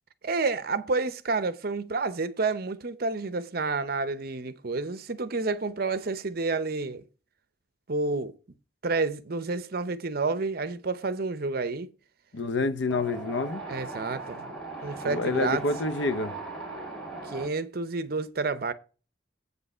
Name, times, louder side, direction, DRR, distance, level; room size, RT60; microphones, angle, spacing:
voice 1, 0.2-7.0 7.9-8.3 8.8-11.9 13.7-14.5 14.8-15.6 17.3-18.7, right 3 dB, 55° right, 0.7 m, -29 dB
voice 2, 12.3-13.6 15.0-16.3, left 3 dB, 75° left, 0.7 m, -28 dB
Wind, 12.9-17.5, right 3 dB, 5° left, 3.1 m, -38 dB
8.2 x 5.3 x 5.5 m
head